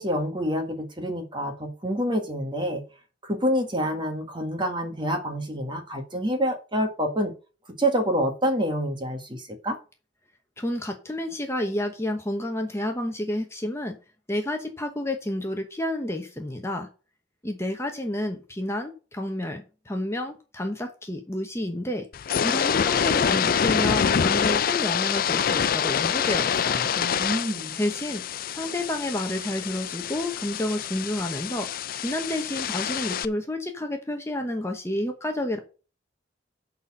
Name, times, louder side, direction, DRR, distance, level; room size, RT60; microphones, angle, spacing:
voice 1, 0.0-2.8 3.2-7.3 7.8-9.8 27.0-27.8, equal, 25° right, 4 dB, 1.8 m, -27 dB
voice 2, 10.6-14.0 14.3-16.9 17.4-22.1 22.4-26.9 27.8-28.2 28.5-31.7 32.0-35.6, left 1 dB, 15° left, 4 dB, 1.0 m, -30 dB
sound 1, 22.1-33.2, left 7 dB, 50° left, 0.4 m, -26 dB
9.2 x 4.3 x 7.3 m, 0.34 s
head